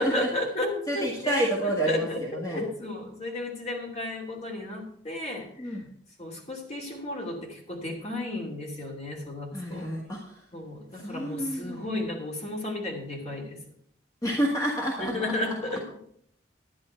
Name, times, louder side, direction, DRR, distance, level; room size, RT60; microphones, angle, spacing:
voice 1, 0.0-1.5 1.8-5.8 6.2-9.9 10.5-13.6 15.0-15.9, left 1 dB, 35° left, 0 dB, 2.6 m, -33 dB
voice 2, 0.9-2.7 5.6-5.9 9.5-10.5 10.9-11.9 14.2-15.8, right 1 dB, 20° left, -2 dB, 1.7 m, -29 dB
11.0 x 10.5 x 4.4 m, 0.67 s
head